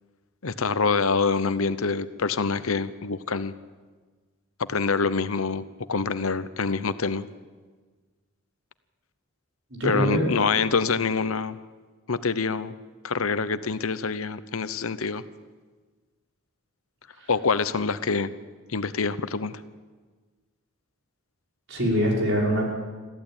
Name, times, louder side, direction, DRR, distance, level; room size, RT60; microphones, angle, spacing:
voice 1, 0.4-3.5 4.7-7.3 9.8-11.6 12.1-12.7 13.0-15.2 17.3-18.3 18.7-19.6, left 4 dB, 80° left, 14 dB, 0.9 m, -26 dB
voice 2, 9.8-10.2 17.2-17.3 21.7-22.7, equal, 60° right, -2 dB, 5.7 m, -23 dB
22.0 x 15.0 x 9.0 m, 1.4 s
head